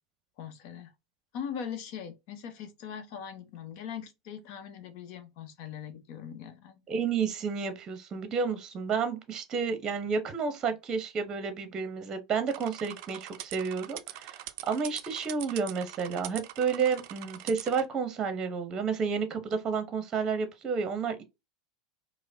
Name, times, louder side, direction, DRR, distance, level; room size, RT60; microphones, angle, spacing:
voice 1, 0.4-0.9 1.3-6.8, left 8 dB, 50° left, 0.9 m, -41 dB
voice 2, 6.9-21.2, right 5 dB, 30° right, 0.8 m, -31 dB
sound 1, 12.5-17.9, right 14 dB, 50° right, 0.4 m, -43 dB
4.9 x 2.1 x 2.6 m
figure-of-eight pair, 85°, 2 cm